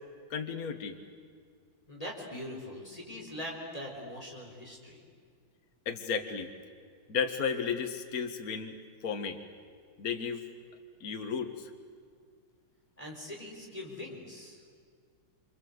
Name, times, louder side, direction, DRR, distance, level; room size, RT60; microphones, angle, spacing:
voice 1, 0.3-1.0 5.9-6.5 7.1-8.7 9.0-9.4 10.0-10.4 11.0-11.7, left 6 dB, 45° left, 5 dB, 1.9 m, -33 dB
voice 2, 1.9-5.0 13.0-14.6, left 1 dB, 15° left, -2 dB, 4.3 m, -42 dB
27.5 x 26.5 x 8.0 m, 2.1 s
omnidirectional pair, 2.3 m